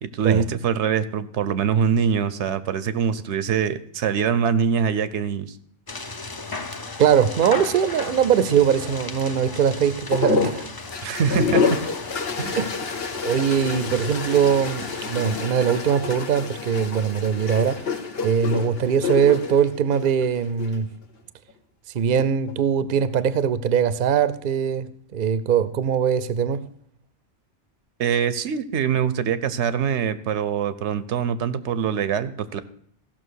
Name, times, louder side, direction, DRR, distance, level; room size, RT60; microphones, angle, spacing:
voice 1, 0.0-5.6 11.0-11.8 12.4-12.6 28.0-32.6, right 7 dB, 80° right, 1.0 m, -24 dB
sound 1, 5.9-15.4, left 3 dB, 25° left, 0.5 m, -36 dB
voice 2, 7.0-10.7 12.6-12.7 13.2-17.9 18.2-20.9 21.9-24.9 25.1-26.6, right 8 dB, 55° right, 0.7 m, -21 dB
sound 2, 10.1-20.8 22.0-22.5, left 5 dB, 60° left, 1.2 m, -28 dB
15.0 x 6.0 x 6.3 m
omnidirectional pair, 1.2 m